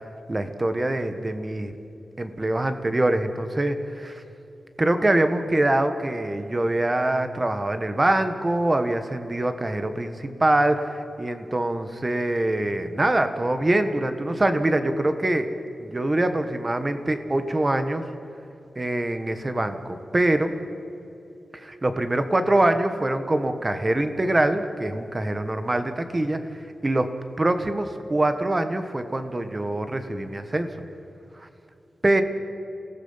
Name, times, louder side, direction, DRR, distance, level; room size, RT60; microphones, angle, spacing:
voice 1, 0.3-1.7 2.2-4.2 4.8-15.5 15.8-18.0 18.7-20.5 21.5-26.4 26.8-27.1 27.4-30.7 31.4-31.5 32.0-32.2, right 1 dB, 20° right, 8 dB, 1.4 m, -24 dB
27.5 x 18.0 x 5.7 m, 2.9 s
wide cardioid pair, 155°, 0 cm